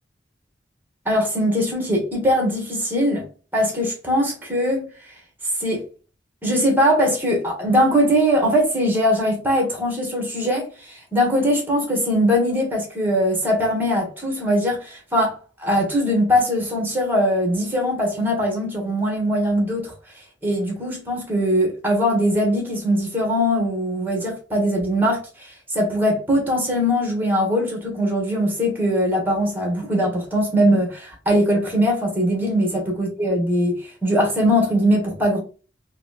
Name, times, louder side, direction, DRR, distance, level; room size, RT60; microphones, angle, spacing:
voice 1, 1.0-3.2 3.5-4.9 5.6-5.8 6.4-15.3 15.6-19.9 20.4-25.5 25.7-35.4, equal, 10° right, 1.2 m, -21 dB
4.0 x 2.2 x 2.4 m
head